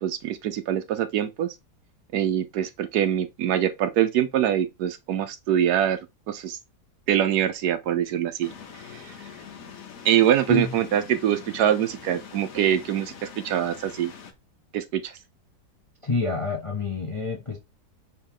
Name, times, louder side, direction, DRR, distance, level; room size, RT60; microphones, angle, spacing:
voice 1, 0.0-1.5 2.1-6.0 6.3-6.6 7.1-8.5 8.9-9.1 10.0-14.1 14.7-15.1, right 10 dB, 75° right, 1.2 m, -24 dB
sound 1, 8.4-14.3, left 7 dB, 60° left, 1.1 m, -43 dB
voice 2, 16.0-17.6, left 3 dB, 40° left, 0.4 m, -27 dB
4.5 x 3.0 x 3.7 m
omnidirectional pair, 1.8 m